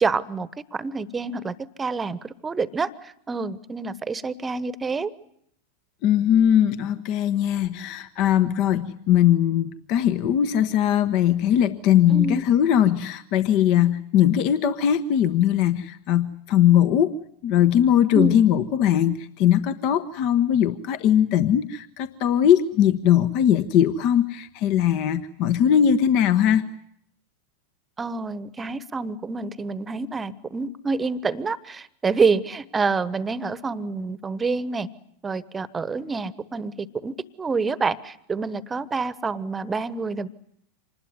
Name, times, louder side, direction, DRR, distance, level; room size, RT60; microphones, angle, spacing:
voice 1, 0.0-5.1 12.1-12.4 18.1-18.4 28.0-34.9 35.2-40.3, right 4 dB, 15° right, 18 dB, 1.1 m, -27 dB
voice 2, 6.0-17.2 17.4-26.7, left 10 dB, 45° left, 11 dB, 1.1 m, -20 dB
26.0 x 20.0 x 9.7 m, 0.71 s
figure-of-eight pair, 90°, 0 cm